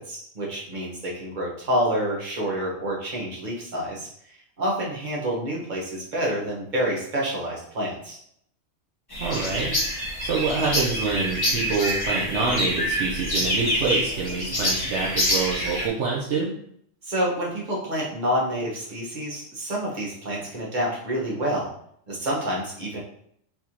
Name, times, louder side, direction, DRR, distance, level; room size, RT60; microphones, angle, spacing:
voice 1, 0.1-4.1 4.6-8.2 17.0-21.7 22.1-23.0, equal, 35° right, -5 dB, 1.4 m, -28 dB
sound 1, 9.1-15.9, equal, 20° left, 1.1 m, -26 dB
voice 2, 9.2-9.8 10.2-16.5, right 4 dB, 65° right, -4 dB, 1.0 m, -26 dB
4.6 x 3.6 x 2.9 m, 0.69 s
omnidirectional pair, 1.4 m